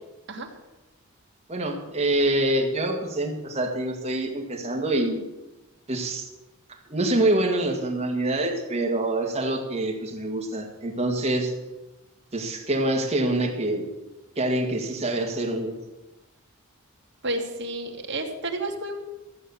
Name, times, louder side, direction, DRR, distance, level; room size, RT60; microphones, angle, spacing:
voice 1, 1.5-5.3 5.9-6.3 6.7-11.5 12.3-13.9 14.4-15.8, right 1 dB, 30° right, 2 dB, 1.8 m, -26 dB
voice 2, 17.2-18.9, right 1 dB, 50° right, 1 dB, 2.2 m, -30 dB
14.5 x 8.8 x 7.0 m, 1.0 s
head